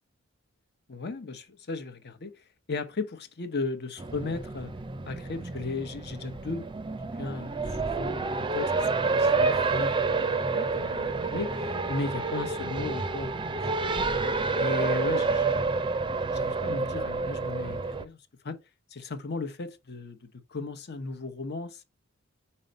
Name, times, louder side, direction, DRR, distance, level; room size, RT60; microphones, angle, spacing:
voice 1, 0.9-4.7 5.1-13.6 14.0-14.1 14.6-15.8 16.3-18.2 18.4-18.6 18.9-21.8, left 3 dB, 50° left, 0.9 m, -36 dB
Race car auto racing, 4.0-18.0, right 3 dB, 25° right, 0.5 m, -29 dB
5.5 x 4.3 x 5.1 m
head